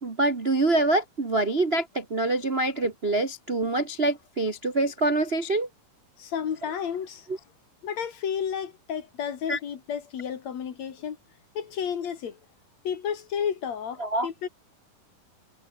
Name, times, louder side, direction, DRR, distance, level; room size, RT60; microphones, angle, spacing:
voice 1, 0.0-5.7 9.5-9.6 14.0-14.3, right 2 dB, 60° right, 0.6 m, -25 dB
voice 2, 6.2-7.3 7.8-11.2 11.5-12.4 12.8-14.5, left 8 dB, 55° left, 2.9 m, -32 dB
omnidirectional pair, 4.2 m